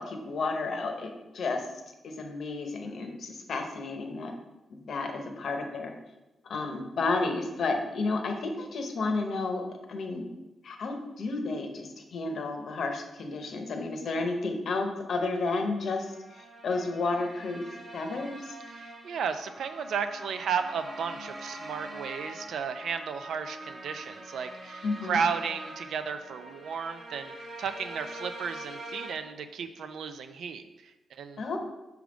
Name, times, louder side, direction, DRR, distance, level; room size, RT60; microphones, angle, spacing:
voice 1, 0.0-4.3 4.7-5.9 6.5-10.2 10.6-18.6 24.8-25.2 31.4-31.6, left 3 dB, 55° left, 4 dB, 0.8 m, -32 dB
sound 1, 15.8-29.1, right 1 dB, 40° right, 1.1 m, -44 dB
voice 2, 18.7-31.4, right 6 dB, 75° right, 9 dB, 0.4 m, -34 dB
6.1 x 3.5 x 5.0 m, 1.0 s
wide cardioid pair, 175°, 0 cm